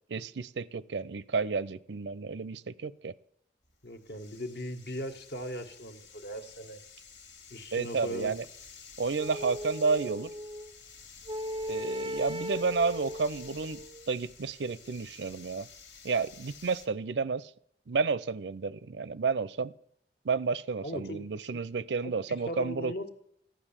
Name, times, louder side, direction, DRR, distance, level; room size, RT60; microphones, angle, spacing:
voice 1, 0.1-3.1 7.7-8.4 9.0-10.3 11.7-13.8 14.1-15.7 16.0-17.5 17.9-19.7 20.2-22.9, right 4 dB, 80° right, 0.5 m, -31 dB
sound 1, 3.6-16.9, left 6 dB, 90° left, 2.2 m, -52 dB
voice 2, 3.8-6.8 7.5-8.3 20.8-21.2 21.5-21.6 22.0-23.1, equal, 65° left, 1.6 m, -39 dB
sound 2, 9.2-10.7 11.3-14.1, equal, 30° right, 0.4 m, -37 dB
15.0 x 10.0 x 7.3 m
head